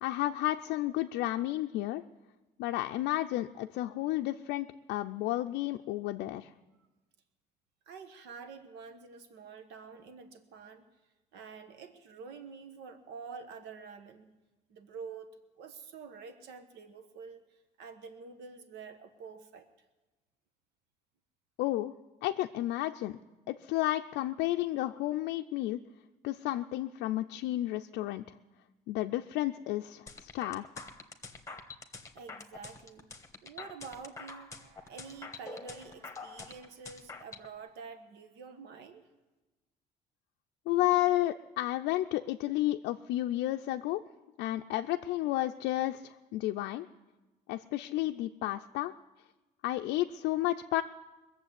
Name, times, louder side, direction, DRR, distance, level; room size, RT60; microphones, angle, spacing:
voice 1, 0.0-2.0 2.6-6.5 21.6-21.9 22.2-23.2 23.5-25.8 26.2-28.2 28.9-30.8 40.7-44.0 44.4-46.9 47.5-48.9 49.6-50.8, left 15 dB, 85° left, 4 dB, 0.5 m, -32 dB
voice 2, 7.9-10.8 11.3-14.3 14.7-15.3 15.6-19.7 32.1-33.1 33.4-39.0, right 5 dB, 80° right, 7 dB, 1.3 m, -48 dB
sound 1, 30.1-37.5, left 4 dB, 20° left, 1.3 m, -46 dB
21.0 x 7.4 x 8.1 m, 1.1 s
cardioid pair, 110°, 17 cm